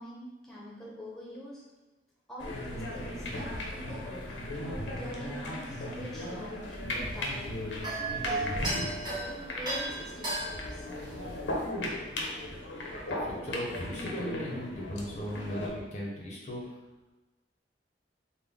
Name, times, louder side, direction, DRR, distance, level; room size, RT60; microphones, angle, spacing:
voice 1, 0.0-1.6 2.3-4.2 5.0-10.9, equal, ahead, -5 dB, 0.7 m, -45 dB
sound 1, 2.4-15.7, left 1 dB, 80° left, 0.6 m, -37 dB
sound 2, 6.6-11.7, right 2 dB, 25° right, 1.0 m, -36 dB
voice 2, 13.1-16.7, equal, 40° left, -3 dB, 0.6 m, -37 dB
3.5 x 2.1 x 3.5 m, 1.1 s
head